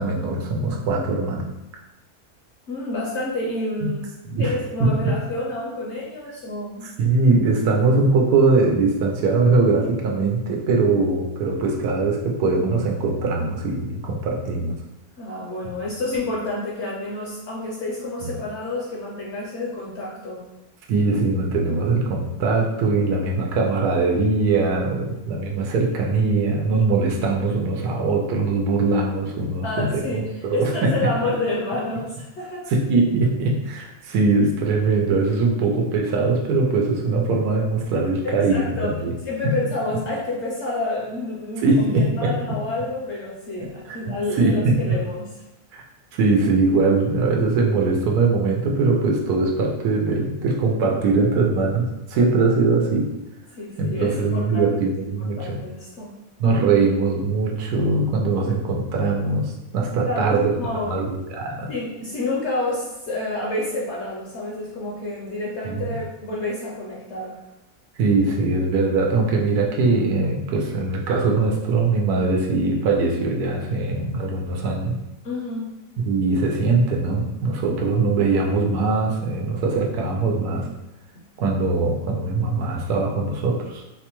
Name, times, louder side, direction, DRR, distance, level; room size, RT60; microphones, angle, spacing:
voice 1, 0.0-1.4 3.8-3.9 4.3-4.5 4.8-5.1 6.8-14.8 18.2-18.3 20.9-30.9 32.7-39.1 39.4-39.6 41.6-42.4 43.6-44.0 44.4-44.8 45.7-45.8 46.1-53.1 53.8-55.6 56.4-60.5 60.9-61.7 65.6-65.8 68.0-75.0 76.1-80.7 81.4-83.8, right 3 dB, 90° right, 0 dB, 1.1 m, -21 dB
voice 2, 2.7-4.0 4.4-6.9 15.2-20.4 29.6-32.7 38.2-39.0 39.3-45.3 53.6-54.7 55.2-56.1 60.1-60.9 61.7-67.4 75.2-75.7, left 2 dB, 60° left, -4 dB, 0.8 m, -29 dB
4.1 x 2.2 x 2.9 m, 0.94 s
omnidirectional pair, 1.6 m